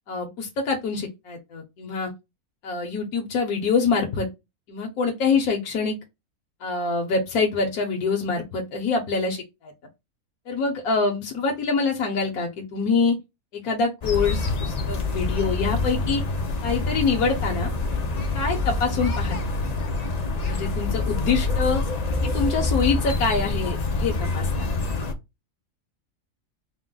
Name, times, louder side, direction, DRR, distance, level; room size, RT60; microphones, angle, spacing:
voice 1, 0.1-2.1 2.6-4.3 4.7-6.0 6.6-9.7 10.5-13.2 13.5-16.2 16.6-17.7 18.3-19.4 20.5-21.8 22.2-24.5, left 4 dB, 80° left, 1.4 m, -25 dB
sound 1, 14.0-25.1, left 3 dB, 55° left, 0.4 m, -26 dB
4.3 x 2.1 x 3.8 m
omnidirectional pair, 1.6 m